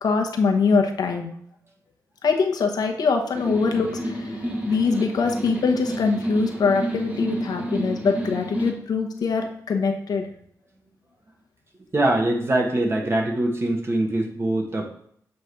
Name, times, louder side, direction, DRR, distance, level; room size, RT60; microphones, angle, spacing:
voice 1, 0.0-1.3 2.2-4.4 4.7-10.3, left 5 dB, 80° left, 4 dB, 1.0 m, -23 dB
sound 1, 3.3-8.7, right 1 dB, 20° right, 1.3 m, -29 dB
voice 2, 11.9-14.9, right 1 dB, 40° right, 1 dB, 1.5 m, -23 dB
7.6 x 3.2 x 5.8 m, 0.65 s
cardioid pair, 85°, 7 cm